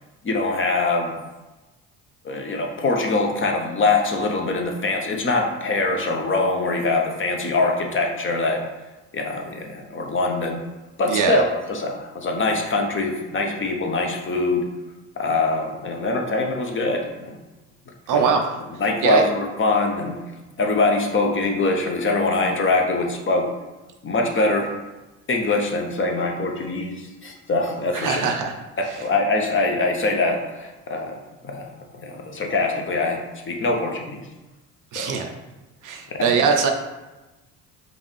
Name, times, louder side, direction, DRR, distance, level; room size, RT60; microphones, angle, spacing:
voice 1, 0.2-1.2 2.2-8.6 9.1-10.6 11.0-14.7 15.2-17.4 18.1-18.3 18.8-20.1 20.6-23.5 24.0-24.7 25.3-28.2 29.0-31.1 31.4-31.7 31.9-33.2 33.5-34.2 34.9-35.1, left 3 dB, 25° left, 2 dB, 0.7 m, -23 dB
voice 2, 11.1-11.4 18.1-18.5 19.0-19.2 27.9-28.5 28.9-29.0 34.9-35.3 35.8-36.7, right 6 dB, 45° right, 4 dB, 0.6 m, -21 dB
5.2 x 2.4 x 3.2 m, 1.1 s
figure-of-eight pair, 50°, 45 cm